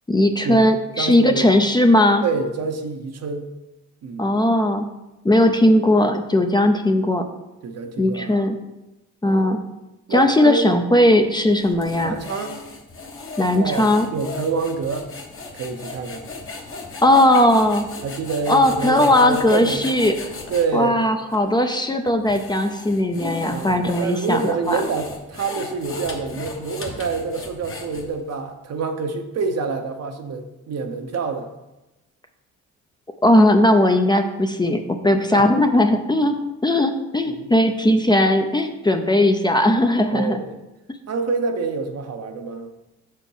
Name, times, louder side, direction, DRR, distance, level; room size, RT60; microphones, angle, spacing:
voice 1, 0.1-2.2 4.2-4.9 5.2-7.3 8.0-8.6 9.2-9.6 10.1-12.1 13.4-14.1 17.0-17.9 18.5-20.2 20.7-24.8 33.2-40.4, left 1 dB, 15° left, 6 dB, 0.6 m, -18 dB
voice 2, 1.0-1.4 2.2-3.5 4.0-4.3 7.6-8.5 9.2-9.5 10.1-10.7 11.8-12.6 13.5-15.1 15.5-16.3 18.0-19.9 20.5-21.0 23.5-31.5 35.3-35.4 36.7-36.8 37.2-37.5 40.1-40.6 41.1-42.7, right 4 dB, 55° right, 5 dB, 0.9 m, -27 dB
sound 1, 11.5-20.7 21.3-21.4 22.1-28.3, left 3 dB, 45° left, 1.2 m, -36 dB
5.9 x 4.4 x 5.5 m, 0.98 s
cardioid pair, 90°, 30 cm